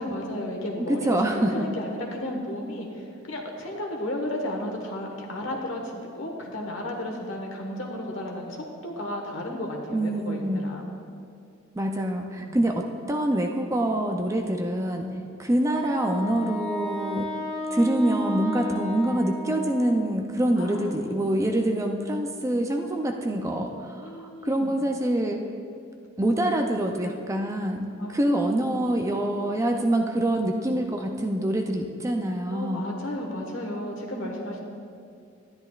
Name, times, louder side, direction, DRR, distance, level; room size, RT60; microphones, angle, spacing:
voice 1, 0.0-1.2 1.5-10.8 12.4-12.6 15.2-15.3 20.6-21.0 24.0-24.8 28.0-28.2 32.5-34.6, left 1 dB, 65° left, 0 dB, 1.3 m, -33 dB
voice 2, 0.9-1.7 9.9-10.6 11.8-15.1 15.4-17.3 17.7-25.4 26.2-32.9, right 1 dB, 15° right, 3 dB, 0.4 m, -25 dB
Wind instrument woodwind instrument, 15.7-20.3, equal, ahead, 1.8 m, -33 dB
12.0 x 10.5 x 2.4 m, 2.4 s
head